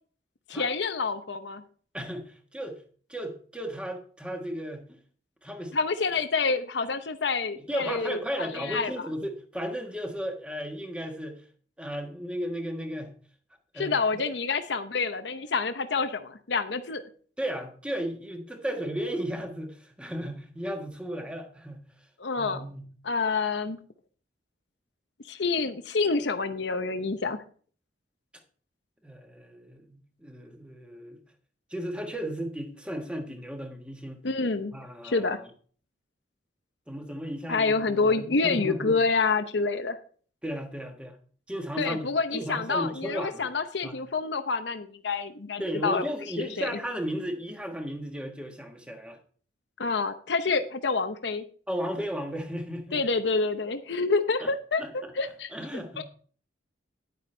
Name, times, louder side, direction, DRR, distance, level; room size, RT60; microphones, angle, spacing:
voice 1, 0.5-1.6 5.7-8.9 13.8-17.0 22.2-22.6 23.0-23.8 25.3-27.4 34.2-34.7 35.0-35.4 37.5-40.0 41.8-46.0 46.4-46.8 49.8-51.4 52.9-56.0, left 4 dB, 75° left, 9 dB, 0.8 m, -28 dB
voice 2, 1.9-2.8 3.1-5.0 5.4-5.7 7.6-11.4 11.8-13.1 13.7-14.2 17.4-21.9 22.4-22.9 29.0-31.2 31.7-34.2 34.7-35.5 36.9-39.0 40.4-41.2 41.5-43.5 43.8-43.9 45.6-49.2 51.7-53.0 54.4-54.5 54.8-55.1 55.5-56.0, equal, 5° right, 4 dB, 1.4 m, -35 dB
10.5 x 9.3 x 3.3 m, 0.43 s
head